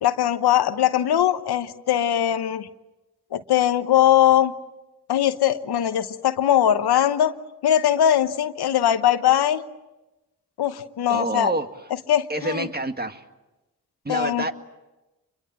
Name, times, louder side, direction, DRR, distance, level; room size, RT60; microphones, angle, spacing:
voice 1, 0.0-2.7 3.3-4.5 5.1-7.3 7.6-9.6 10.6-11.5 12.1-12.7 14.1-14.5, left 11 dB, 85° left, 11 dB, 1.0 m, -20 dB
voice 2, 11.1-11.7 12.3-13.2 14.0-14.5, right 2 dB, 25° right, 7 dB, 1.9 m, -27 dB
26.5 x 23.0 x 7.6 m, 1.0 s
cardioid pair, 50°, 38 cm